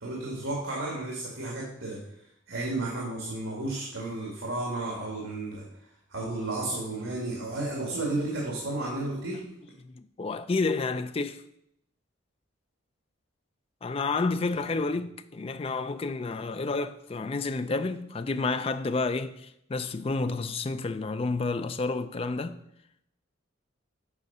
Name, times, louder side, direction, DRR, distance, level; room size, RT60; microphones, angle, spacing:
voice 1, 0.0-2.0 2.5-5.6 6.1-9.4 14.6-14.7, right 2 dB, 75° right, 1.9 m, -32 dB
voice 2, 9.8-11.4 13.8-22.6, left 3 dB, 30° left, 0.3 m, -30 dB
8.0 x 4.8 x 5.4 m
head